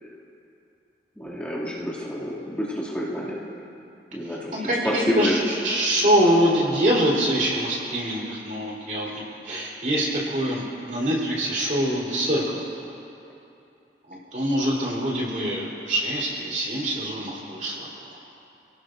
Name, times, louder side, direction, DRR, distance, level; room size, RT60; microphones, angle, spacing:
voice 1, 1.2-3.4 4.1-5.4, equal, 10° left, -9 dB, 2.6 m, -28 dB
voice 2, 4.3-12.7 14.1-18.2, equal, 45° right, -5 dB, 3.9 m, -24 dB
29.0 x 17.5 x 2.7 m, 2.8 s
head